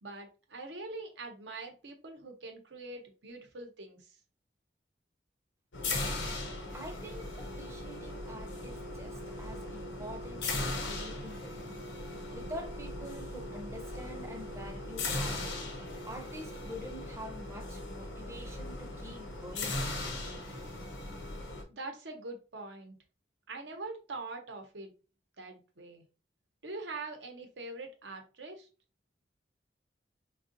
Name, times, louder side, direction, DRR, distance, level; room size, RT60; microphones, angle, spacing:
voice 1, 0.0-4.2 21.7-23.0 23.5-24.9 25.4-26.0 26.6-28.7, right 3 dB, 80° right, 0.8 m, -43 dB
sound 1, 5.7-21.6, left 2 dB, 90° left, 0.8 m, -38 dB
voice 2, 6.7-11.6 12.3-15.5 16.0-19.9, equal, 15° right, 0.5 m, -46 dB
3.5 x 2.3 x 2.6 m
head